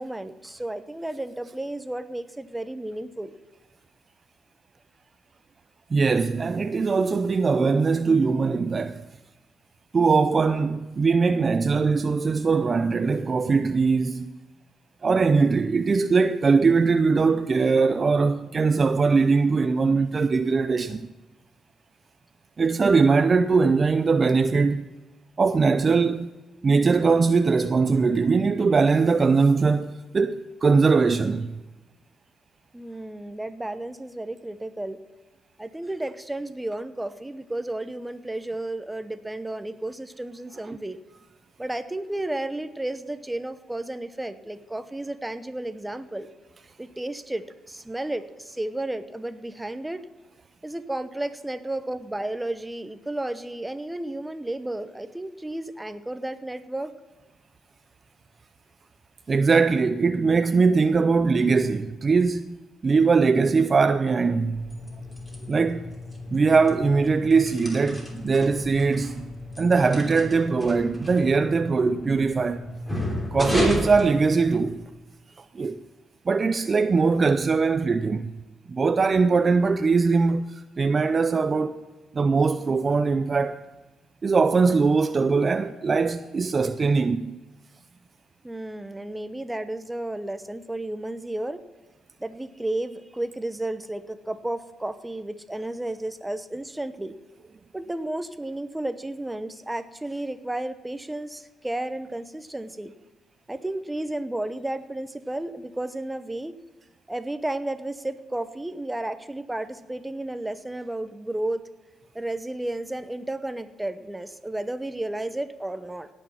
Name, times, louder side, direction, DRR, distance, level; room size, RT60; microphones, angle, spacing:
voice 1, 0.0-3.4 32.7-35.0 35.6-41.0 41.6-46.3 46.8-50.1 50.6-56.9 88.4-91.6 92.2-97.2 97.7-102.9 103.5-106.6 107.1-111.6 112.1-116.1, right 1 dB, 10° right, 0.8 m, -32 dB
voice 2, 5.9-9.1 9.9-14.3 15.0-21.1 22.6-24.9 25.4-26.3 26.6-31.6 59.3-62.6 62.8-64.7 65.5-65.9 66.3-69.2 69.6-72.6 73.3-74.8 75.4-75.8 76.3-78.3 78.7-81.8 82.1-83.6 84.2-87.4, right 4 dB, 35° right, 0.5 m, -21 dB
sound 1, 64.5-74.9, left 1 dB, 15° left, 3.1 m, -33 dB
17.5 x 6.3 x 5.9 m
cardioid pair, 90°, 0 cm